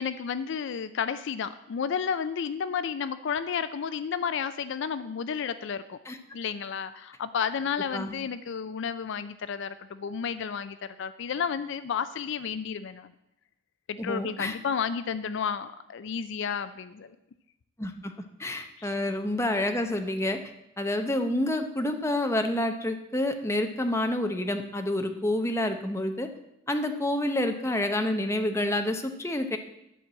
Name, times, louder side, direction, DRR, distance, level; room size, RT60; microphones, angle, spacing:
voice 1, 0.0-6.0 6.3-13.1 13.9-17.2 18.8-18.9, left 7 dB, 60° left, 13 dB, 0.4 m, -32 dB
voice 2, 14.0-14.6 17.8-18.1 18.4-20.4 20.8-26.3 26.7-29.6, left 1 dB, 15° left, 6 dB, 0.7 m, -28 dB
11.0 x 4.6 x 7.4 m, 0.85 s
head